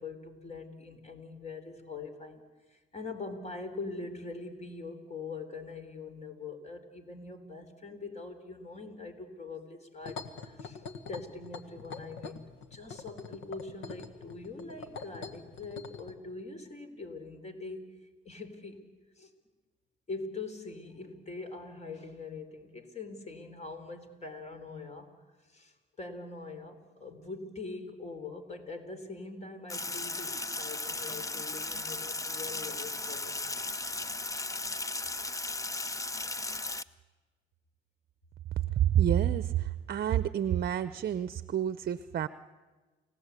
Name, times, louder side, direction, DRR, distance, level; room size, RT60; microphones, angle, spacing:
voice 1, 0.0-2.4 2.7-10.8 11.1-12.3 12.7-17.9 18.2-18.8 19.2-19.3 20.1-25.1 25.5-33.7, left 3 dB, 35° left, 7 dB, 4.0 m, -43 dB
sound 1, 10.0-16.1, left 4 dB, 90° left, 1.7 m, -43 dB
Sink (filling or washing), 29.7-36.8, left 2 dB, 15° left, 0.7 m, -36 dB
voice 2, 38.8-42.3, right 10 dB, 50° right, 13 dB, 0.7 m, -28 dB
30.0 x 17.0 x 8.3 m, 1.3 s
cardioid pair, 90°, 20 cm